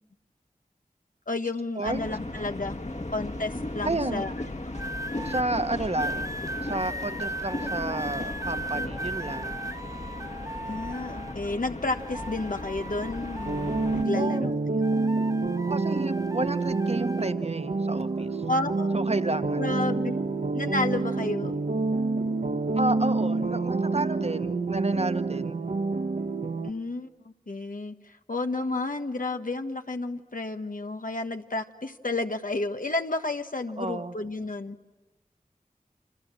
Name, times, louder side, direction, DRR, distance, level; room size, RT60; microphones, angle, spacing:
voice 1, 1.3-2.7 3.1-4.3 4.6-4.7 10.7-14.5 18.5-19.1 19.6-20.1 20.5-21.5 26.6-34.8, left 2 dB, 70° left, 6 dB, 1.4 m, -31 dB
sound 1, 1.8-14.0, left 2 dB, 55° left, 2.1 m, -36 dB
voice 2, 3.8-4.3 5.2-6.3 6.6-9.6 14.2-14.5 15.7-18.4 18.9-19.6 22.7-25.6 33.8-34.1, right 2 dB, 45° right, 9 dB, 1.5 m, -31 dB
sound 2, 4.7-5.4 6.0-11.5 11.9-14.5 14.8-17.3 18.1-18.4, right 1 dB, 20° right, 0.8 m, -37 dB
sound 3, 13.5-26.7, right 3 dB, 65° right, 1.2 m, -28 dB
29.5 x 27.0 x 7.6 m, 1.2 s
wide cardioid pair, 40°, 15 cm